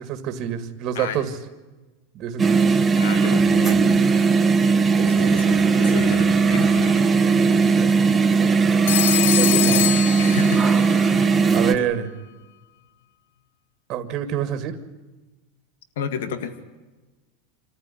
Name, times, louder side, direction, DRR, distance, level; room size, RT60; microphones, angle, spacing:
voice 1, 0.1-1.3 2.1-2.6 5.0-5.5 8.4-8.6 9.3-9.9 11.5-12.1 13.9-14.8, right 9 dB, 35° right, 8 dB, 1.9 m, -27 dB
sound 1, 2.4-11.7, right 4 dB, 10° right, 1.3 m, -18 dB
voice 2, 3.0-4.3 5.0-6.9 7.4-7.6 9.7-9.8 10.2-10.6 10.9-11.9 16.0-16.5, left 8 dB, 85° left, 10 dB, 2.0 m, -32 dB
Telephone, 8.9-10.9, left 14 dB, 70° left, 0.7 m, -24 dB
27.5 x 14.5 x 10.0 m, 1.2 s
supercardioid pair, 165°, 0 cm